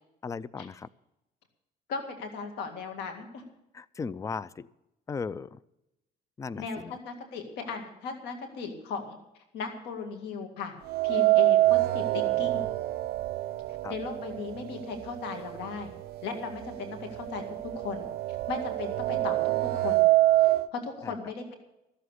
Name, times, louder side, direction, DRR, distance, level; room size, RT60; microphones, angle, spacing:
voice 1, 0.2-0.9 3.7-4.7 5.1-5.6 6.4-6.9 13.8-14.0 21.0-21.1, left 5 dB, 20° left, 19 dB, 0.4 m, -36 dB
voice 2, 1.9-3.4 6.6-9.2 9.5-10.7 11.0-12.6 13.9-15.9 16.2-17.4 17.8-20.1 20.7-21.5, left 5 dB, 85° left, 4 dB, 2.1 m, -37 dB
sound 1, 10.9-14.9 15.3-15.4 16.3-16.4 16.8-20.7, right 17 dB, 70° right, 0.6 m, -25 dB
14.0 x 7.7 x 8.1 m, 0.89 s
cardioid pair, 110°, 17 cm